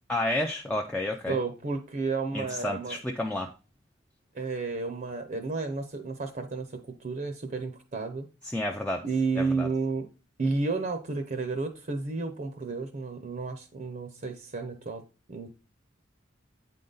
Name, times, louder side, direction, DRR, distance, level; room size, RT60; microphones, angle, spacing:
voice 1, 0.1-1.4 2.3-3.5 8.4-9.0 9.4-9.7, left 1 dB, 5° left, 0.4 m, -30 dB
voice 2, 1.3-3.0 4.3-8.3 9.0-10.1 10.4-15.0 15.3-15.5, right 4 dB, 45° right, 0.6 m, -32 dB
8.4 x 3.9 x 3.8 m
head